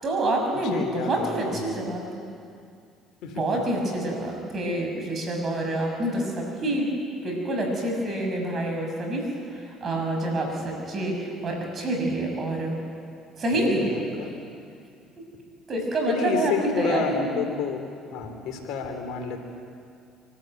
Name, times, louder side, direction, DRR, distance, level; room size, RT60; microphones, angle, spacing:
voice 1, 0.0-2.2 3.4-6.9 7.2-12.8 13.4-13.9 15.2-15.3 15.7-17.3, right 1 dB, 45° right, 2 dB, 6.5 m, -27 dB
voice 2, 0.7-1.8 3.2-3.4 13.5-14.3 16.1-17.8 18.1-19.4, left 5 dB, 70° left, 4 dB, 3.0 m, -30 dB
24.5 x 13.5 x 9.1 m, 2.4 s
supercardioid pair, 75°, 0 cm